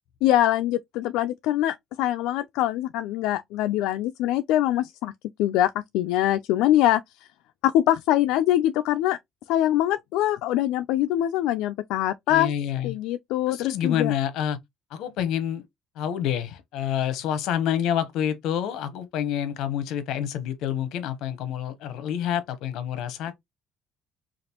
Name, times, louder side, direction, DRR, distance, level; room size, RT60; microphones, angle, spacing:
voice 1, 0.2-5.1 5.4-7.0 7.6-9.2 9.5-12.5 12.8-14.1, left 13 dB, 85° left, 0.3 m, -23 dB
voice 2, 12.3-13.0 13.5-14.6 14.9-15.6 16.0-23.4, left 9 dB, 70° left, 0.9 m, -28 dB
5.0 x 2.5 x 2.8 m
cardioid pair, 150°, 0 cm